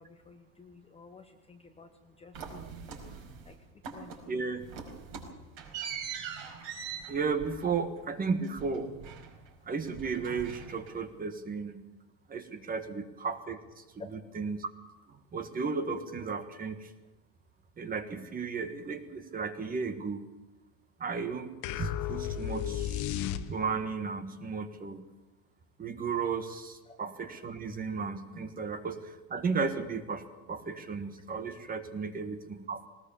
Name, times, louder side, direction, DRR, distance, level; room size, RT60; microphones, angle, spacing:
voice 1, 0.0-2.8 3.5-3.6 3.9-4.4, left 4 dB, 10° left, 5 dB, 1.0 m, -54 dB
sound 1, 2.3-3.5 3.8-4.3 4.6-9.6 9.8-11.1, right 6 dB, 50° right, 5.3 m, -42 dB
voice 2, 4.3-4.6 7.1-8.9 9.7-11.9 12.3-14.7 15.1-16.9 17.8-20.3 21.0-23.2 23.5-25.0 25.8-32.9, right 5 dB, 20° right, 9 dB, 1.5 m, -34 dB
sound 2, 21.6-23.9, left 10 dB, 35° left, 1.2 m, -34 dB
20.0 x 19.5 x 7.1 m, 1.1 s
supercardioid pair, 140°, 48 cm